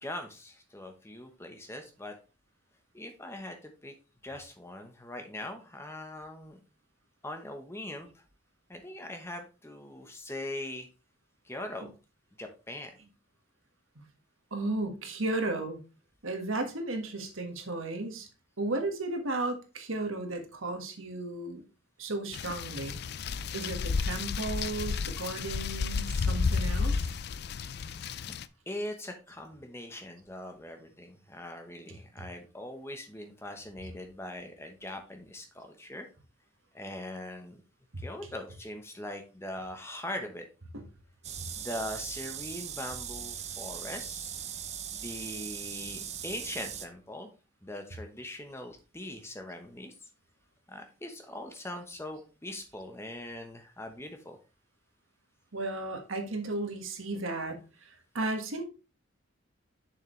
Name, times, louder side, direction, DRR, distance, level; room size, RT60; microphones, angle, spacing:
voice 1, 0.0-2.1 2.9-3.9 4.2-6.6 7.2-8.2 8.7-10.9 11.4-11.9 12.4-12.9 28.7-36.1 36.7-37.6 38.0-40.4 41.6-44.3 44.9-47.3 47.6-49.9 50.7-54.4, left 1 dB, 10° left, 1.0 m, -41 dB
voice 2, 14.5-15.8 16.2-18.3 18.6-21.6 22.0-22.9 23.5-27.1 40.7-40.8 55.5-57.6 58.1-58.6, right 2 dB, 80° right, 1.6 m, -34 dB
sound 1, 22.3-28.5, left 5 dB, 50° left, 0.4 m, -32 dB
sound 2, 41.2-46.9, right 8 dB, 35° right, 0.6 m, -39 dB
7.1 x 6.4 x 3.2 m
head